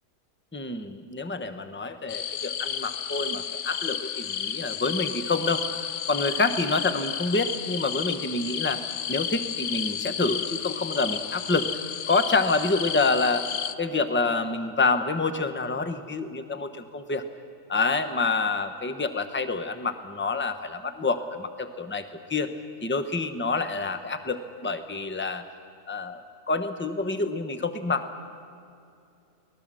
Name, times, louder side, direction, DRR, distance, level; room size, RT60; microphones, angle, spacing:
voice 1, 0.5-8.8 9.1-11.7 12.1-13.5 13.8-17.2 17.7-22.0 22.3-22.5 22.8-25.4 25.9-28.2, left 3 dB, 10° left, 9 dB, 0.8 m, -27 dB
sound 1, 2.1-13.7, left 9 dB, 60° left, 1.1 m, -32 dB
24.0 x 18.5 x 7.6 m, 2.5 s
omnidirectional pair, 1.8 m